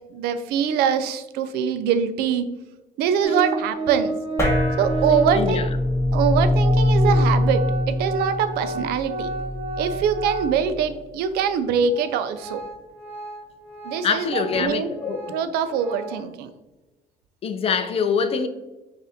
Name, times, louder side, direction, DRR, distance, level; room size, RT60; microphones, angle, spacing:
voice 1, 0.1-2.4 3.0-4.2 4.8-5.7 6.1-9.3 9.8-12.6 13.8-14.9 15.3-16.5, right 7 dB, 85° right, 0.4 m, -23 dB
Organ, 3.2-5.5 6.2-6.3 6.5-10.9 11.3-11.4 11.9-16.3, right 2 dB, 35° right, 1.2 m, -32 dB
sound 1, 4.4-11.1, left 1 dB, 15° left, 1.0 m, -23 dB
voice 2, 5.3-5.7 14.0-15.2 17.4-18.5, left 6 dB, 40° left, 0.4 m, -24 dB
6.2 x 2.5 x 2.7 m
cardioid pair, 125°, 16 cm